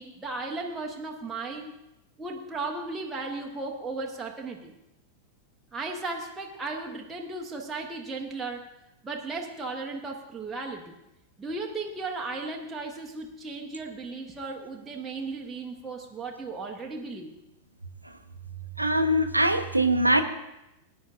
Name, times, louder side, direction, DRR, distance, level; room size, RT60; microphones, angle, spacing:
voice 1, 0.0-1.7 2.2-4.7 5.7-8.7 9.0-10.9 11.4-17.3, right 3 dB, 10° right, -1 dB, 1.0 m, -35 dB
voice 2, 18.8-20.2, right 1 dB, 85° right, 7 dB, 0.7 m, -22 dB
19.5 x 10.0 x 2.5 m, 0.90 s
figure-of-eight pair, 90°, 0 cm